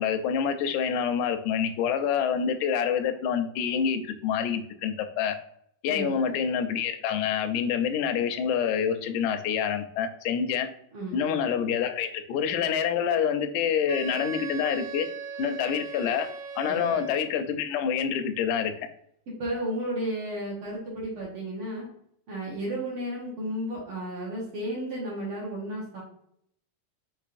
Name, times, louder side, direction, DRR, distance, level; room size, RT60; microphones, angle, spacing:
voice 1, 0.0-5.4 5.8-10.7 11.1-15.1 15.4-16.3 16.6-18.7, left 7 dB, 80° left, 8 dB, 1.8 m, -27 dB
voice 2, 5.9-6.4 10.9-11.2 16.7-17.0 19.4-21.9 22.3-26.0, right 1 dB, 60° right, -4 dB, 1.6 m, -33 dB
Wind instrument woodwind instrument, 13.9-17.4, right 5 dB, 80° right, 1.3 m, -38 dB
5.4 x 3.6 x 2.5 m, 0.69 s
omnidirectional pair, 3.6 m